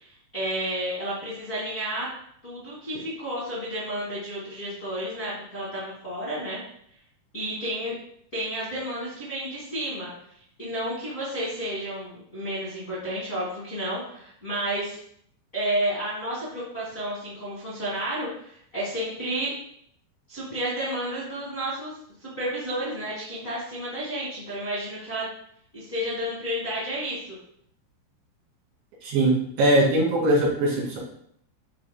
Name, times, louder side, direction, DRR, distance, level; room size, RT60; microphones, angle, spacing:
voice 1, 0.0-2.1 2.4-6.6 7.3-7.9 8.3-10.1 10.6-15.0 15.5-19.5 20.3-21.9 22.2-25.3 25.7-27.4, right 1 dB, 45° left, -9 dB, 1.0 m, -31 dB
voice 2, 29.0-31.0, right 1 dB, 70° right, -4 dB, 4.4 m, -21 dB
9.5 x 4.8 x 2.3 m, 0.67 s
omnidirectional pair, 5.5 m